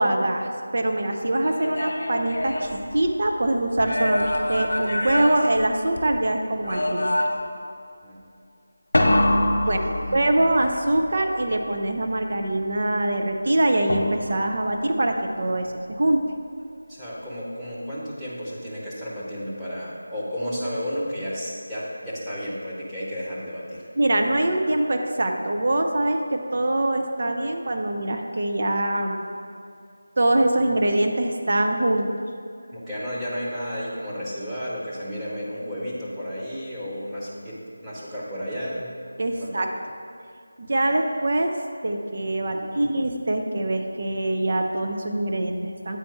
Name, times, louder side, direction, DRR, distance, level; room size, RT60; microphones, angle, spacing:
voice 1, 0.0-7.1 9.6-9.8 10.1-16.2 24.0-29.2 30.2-32.1 39.2-39.7 40.6-41.5 41.8-46.0, right 1 dB, 50° right, 3 dB, 0.6 m, -23 dB
sound 1, 1.4-3.3 3.8-6.2 6.6-7.6 8.9-10.5 13.9-14.5, left 1 dB, 65° left, 0.9 m, -25 dB
voice 2, 9.6-10.3 16.9-23.9 32.7-38.9 39.4-39.7 40.9-41.0 42.4-42.9, equal, 5° right, -11 dB, 1.0 m, -33 dB
8.4 x 4.2 x 4.5 m, 2.4 s
figure-of-eight pair, 165°, 0 cm